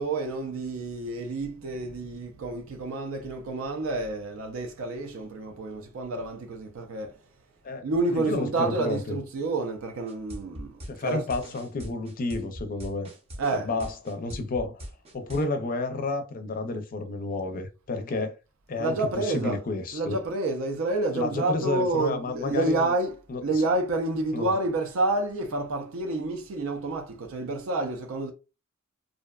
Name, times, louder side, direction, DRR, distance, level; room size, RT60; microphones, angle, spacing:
voice 1, 0.0-7.1 7.8-11.3 13.4-13.8 18.8-19.6 19.9-28.3, right 2 dB, 70° right, 0.4 m, -29 dB
voice 2, 7.6-9.2 10.9-13.1 13.6-14.8 15.1-18.4 18.7-20.2 21.1-22.9 23.3-23.6 24.3-24.5, left 3 dB, 40° left, 0.4 m, -31 dB
sound 1, 10.1-15.4, equal, 30° right, 0.6 m, -40 dB
2.5 x 2.1 x 2.3 m
head